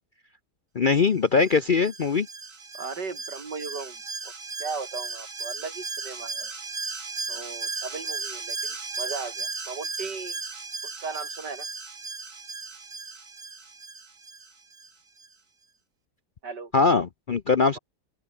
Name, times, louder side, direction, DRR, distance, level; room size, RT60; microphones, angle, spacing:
voice 1, 0.7-2.3 16.7-17.8, left 4 dB, 55° left, 0.5 m, -21 dB
Alarm, 1.4-14.9 15.2-15.3, right 4 dB, 50° right, 2.9 m, -36 dB
voice 2, 2.7-4.3 4.6-6.5 7.3-10.4 11.0-11.7 16.4-16.7, right 4 dB, 75° right, 3.6 m, -37 dB
open air
omnidirectional pair, 1.8 m